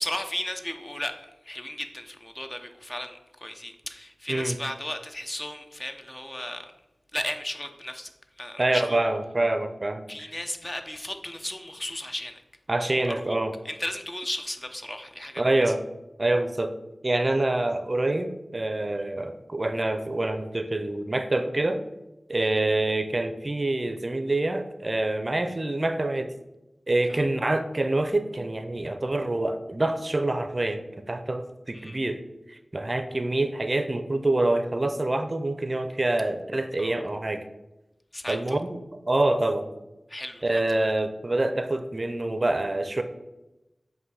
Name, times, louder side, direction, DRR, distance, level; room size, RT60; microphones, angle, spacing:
voice 1, 0.0-6.6 7.1-8.1 8.4-9.0 10.1-12.4 13.3-13.4 13.6-15.4 22.5-22.6 27.1-27.2 31.7-32.0 36.8-37.0 38.1-38.6 40.1-40.9, left 1 dB, 25° left, 6 dB, 0.7 m, -35 dB
voice 2, 8.6-10.3 12.7-13.5 15.4-15.8 16.2-16.7 17.0-21.8 22.3-26.3 26.9-32.2 32.5-37.4 38.3-38.8 39.1-39.7 40.4-43.0, right 2 dB, 40° right, 8 dB, 0.5 m, -26 dB
7.8 x 2.6 x 4.8 m, 0.97 s
cardioid pair, 45°, 0 cm